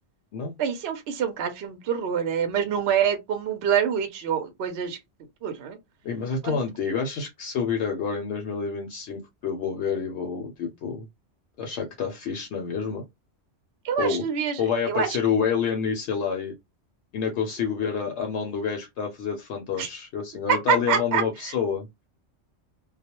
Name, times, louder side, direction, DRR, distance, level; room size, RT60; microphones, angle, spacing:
voice 1, 0.6-5.0 5.4-5.8 6.4-6.6 13.8-14.6 14.9-15.1 19.8-19.9 20.5-21.2, right 8 dB, 65° right, 0.8 m, -26 dB
voice 2, 6.0-11.0 11.6-13.0 14.0-14.2 14.6-16.5 17.1-21.9, left 6 dB, 70° left, 0.8 m, -28 dB
2.3 x 2.0 x 2.9 m
omnidirectional pair, 1.3 m